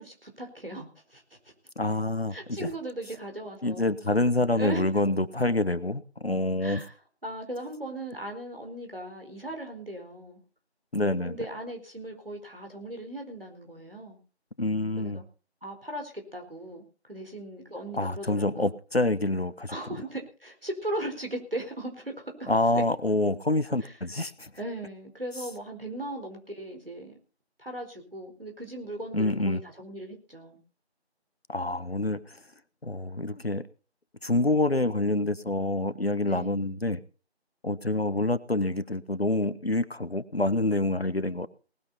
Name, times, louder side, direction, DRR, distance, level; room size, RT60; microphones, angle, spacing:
voice 1, 0.0-1.5 2.3-3.9 4.6-4.9 6.6-6.9 7.2-10.4 11.2-14.2 15.0-15.2 15.6-18.7 19.7-22.8 23.8-23.9 24.6-27.2 27.6-30.6 36.2-36.7, right 1 dB, 55° right, 4 dB, 4.5 m, -38 dB
voice 2, 1.8-2.7 3.6-6.8 10.9-11.4 14.6-15.2 17.9-19.8 22.5-24.5 29.1-29.6 31.5-32.4 32.8-33.6 34.2-37.0 37.6-41.5, left 2 dB, 65° left, 15 dB, 1.2 m, -27 dB
19.0 x 11.0 x 4.2 m, 0.37 s
figure-of-eight pair, 180°, 33 cm